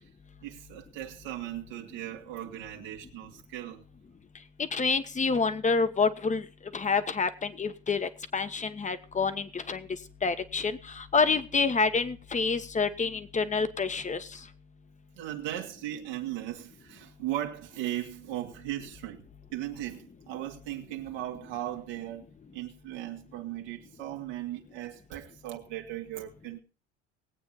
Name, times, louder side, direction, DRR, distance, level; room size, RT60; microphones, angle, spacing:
voice 1, 0.4-3.8 15.2-19.2 19.5-22.3 22.5-26.6, right 13 dB, 65° right, 1.9 m, -37 dB
voice 2, 4.6-6.4 6.7-9.9 10.2-14.3, left 4 dB, 20° left, 1.3 m, -28 dB
20.0 x 8.6 x 4.1 m
hypercardioid pair, 75°, 33 cm